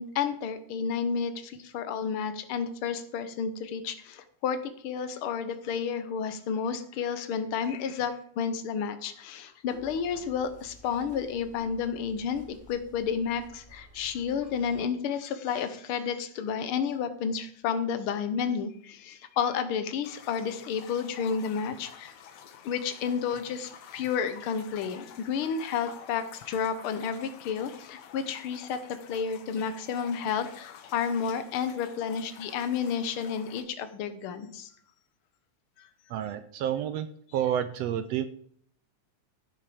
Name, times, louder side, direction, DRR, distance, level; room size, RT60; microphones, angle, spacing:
voice 1, 0.0-22.1 22.6-34.7 35.8-35.9, left 6 dB, 60° left, 10 dB, 1.5 m, -31 dB
sound 1, 9.7-14.8, equal, 15° left, 3.8 m, -52 dB
sound 2, 20.0-33.6, left 8 dB, 85° left, 2.5 m, -50 dB
voice 2, 36.1-37.1 37.3-38.3, right 10 dB, 75° right, 11 dB, 1.6 m, -29 dB
14.5 x 6.6 x 5.0 m, 0.62 s
omnidirectional pair, 3.4 m